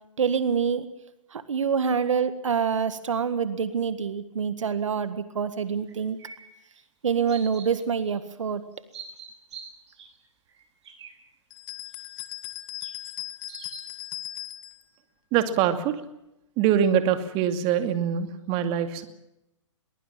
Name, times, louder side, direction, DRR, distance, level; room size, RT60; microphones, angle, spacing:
voice 1, 0.2-0.9 1.3-6.2 7.0-8.6, right 6 dB, 75° right, 12 dB, 1.7 m, -26 dB
sound 1, 5.9-6.8 7.3-7.7 8.0-8.1 8.8-10.2 10.5-11.2 11.9-12.0 12.7-12.9 13.5-13.9, right 6 dB, 60° right, 7.2 m, -44 dB
sound 2, 11.5-14.8, left 14 dB, 45° left, 2.2 m, -38 dB
voice 2, 15.3-16.0 16.6-19.0, right 9 dB, 30° right, 9 dB, 2.5 m, -24 dB
22.5 x 21.5 x 7.4 m, 0.87 s
hypercardioid pair, 130°, 16 cm